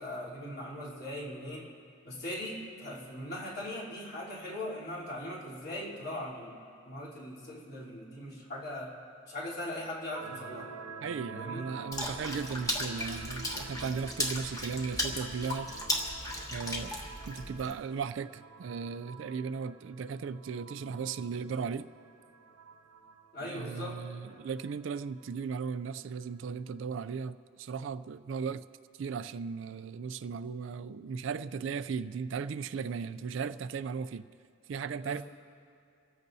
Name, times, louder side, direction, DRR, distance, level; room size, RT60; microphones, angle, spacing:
voice 1, 0.0-1.7 2.0-9.0 9.3-10.7 11.3-11.7 23.3-24.0 35.0-35.2, left 1 dB, 50° left, -6 dB, 3.3 m, -40 dB
sound 1, 10.1-26.7, right 4 dB, 85° right, 1.0 m, -49 dB
voice 2, 11.0-15.7 16.5-17.0 17.3-21.9 23.4-28.6 29.0-34.2 34.7-35.2, right 5 dB, 60° right, 14 dB, 0.3 m, -36 dB
Water / Splash splatter, 11.9-17.7, left 1 dB, 15° left, 1.3 m, -36 dB
28.5 x 14.5 x 2.7 m, 2.4 s
head